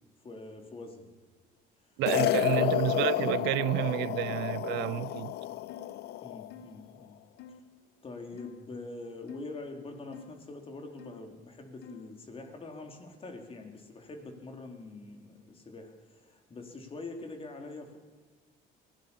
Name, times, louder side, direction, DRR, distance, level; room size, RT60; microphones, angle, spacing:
voice 1, 0.2-1.1 2.3-2.7 6.2-7.2 7.5-7.6 8.0-18.0, left 3 dB, 35° left, 3.8 m, -44 dB
voice 2, 2.0-5.3, right 17 dB, 90° right, 0.5 m, -30 dB
sound 1, 2.1-6.5, left 14 dB, 70° left, 0.6 m, -30 dB
sound 2, 5.7-6.0 6.5-6.8 7.4-7.6 8.4-8.7 9.3-9.5 10.1-10.4 11.0-11.3 11.8-12.1, left 6 dB, 85° left, 1.8 m, -49 dB
22.5 x 17.5 x 7.1 m
cardioid pair, 110°, 17 cm